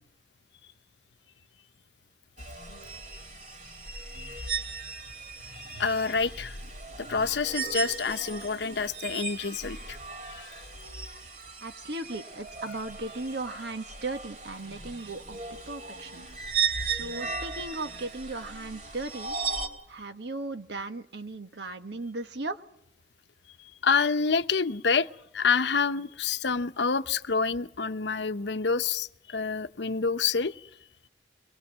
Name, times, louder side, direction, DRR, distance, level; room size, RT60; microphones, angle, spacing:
sound 1, 2.4-19.7, right 5 dB, 45° right, 3.3 m, -37 dB
voice 1, 5.8-6.6 7.0-10.0 10.3-10.6 23.8-25.1 25.3-30.7, left 5 dB, 75° left, 0.8 m, -27 dB
voice 2, 11.6-15.4 15.7-16.2 16.8-19.4 19.9-22.6, right 2 dB, 70° right, 1.4 m, -37 dB
23.0 x 21.0 x 7.4 m
head